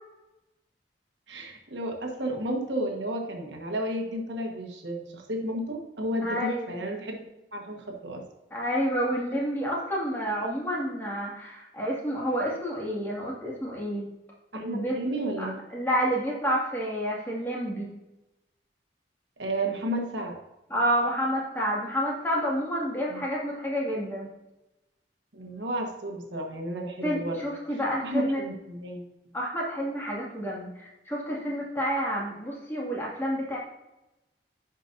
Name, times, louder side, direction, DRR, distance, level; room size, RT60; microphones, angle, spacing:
voice 1, 1.3-7.3 7.5-8.3 14.5-15.6 19.4-20.4 23.1-23.2 25.3-27.4 28.0-29.0, right 1 dB, 80° right, 2 dB, 1.4 m, -32 dB
voice 2, 6.2-6.7 8.5-14.1 14.5-15.0 15.4-17.9 20.7-24.3 27.0-28.4 29.3-33.6, equal, 15° left, -4 dB, 2.0 m, -29 dB
10.5 x 5.3 x 2.6 m, 0.97 s
head